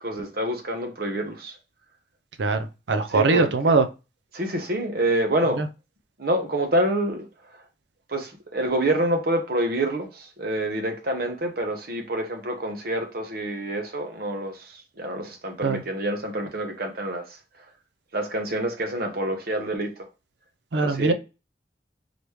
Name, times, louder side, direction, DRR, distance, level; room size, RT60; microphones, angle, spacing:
voice 1, 0.0-1.5 3.1-3.7 4.3-5.6 6.2-7.3 8.1-17.2 18.1-19.9 20.7-21.1, right 1 dB, 60° right, 0.9 m, -27 dB
voice 2, 2.4-3.9 5.6-5.7 15.6-15.8 20.7-21.1, right 3 dB, 85° right, 0.6 m, -21 dB
4.0 x 3.1 x 3.3 m
head